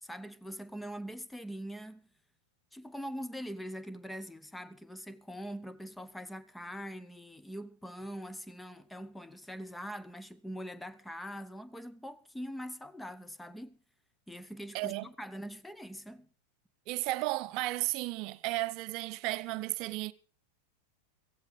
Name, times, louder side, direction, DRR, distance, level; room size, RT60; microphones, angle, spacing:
voice 1, 0.0-2.1 2.7-13.8 14.3-16.3, equal, 5° left, 0.9 m, -43 dB
voice 2, 14.7-15.1 16.9-20.1, right 19 dB, 40° right, 0.8 m, -34 dB
16.5 x 15.5 x 4.0 m
figure-of-eight pair, 90°, 0 cm